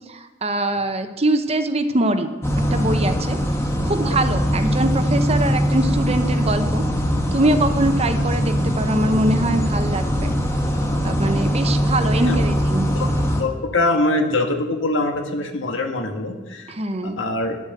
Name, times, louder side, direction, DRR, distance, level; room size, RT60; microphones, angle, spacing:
voice 1, 0.1-2.3 2.7-3.4 3.8-6.8 7.3-10.3 11.0-12.9 16.7-17.2, right 1 dB, 30° right, 8 dB, 0.8 m, -23 dB
sound 1, 2.4-13.4, equal, 15° left, 1.2 m, -21 dB
voice 2, 13.4-16.7 17.0-17.6, left 2 dB, 80° left, 4 dB, 1.5 m, -23 dB
9.8 x 8.2 x 7.9 m, 1.2 s
head